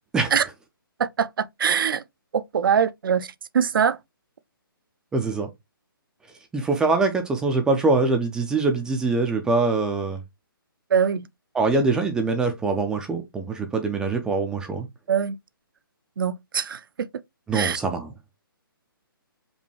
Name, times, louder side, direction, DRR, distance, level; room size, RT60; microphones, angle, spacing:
voice 1, 1.0-2.0 2.3-4.0 10.9-11.3 15.1-15.4 16.2-17.1 17.5-17.8, right 7 dB, 65° right, 0.5 m, -23 dB
voice 2, 5.1-5.5 6.5-10.2 11.5-14.9 17.5-18.1, right 3 dB, 5° right, 0.4 m, -23 dB
5.2 x 2.2 x 3.1 m
hypercardioid pair, 145°, 12 cm